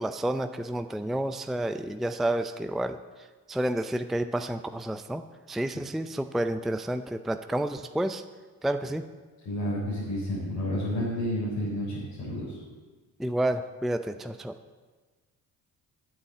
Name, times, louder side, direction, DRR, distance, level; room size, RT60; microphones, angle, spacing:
voice 1, 0.0-3.0 3.5-5.2 5.5-8.2 8.6-9.0 13.2-14.5, right 1 dB, ahead, 9 dB, 0.6 m, -30 dB
voice 2, 9.4-12.6, left 1 dB, 85° left, -9 dB, 4.2 m, -30 dB
9.2 x 8.5 x 8.0 m, 1.4 s
supercardioid pair, 50°, 43 cm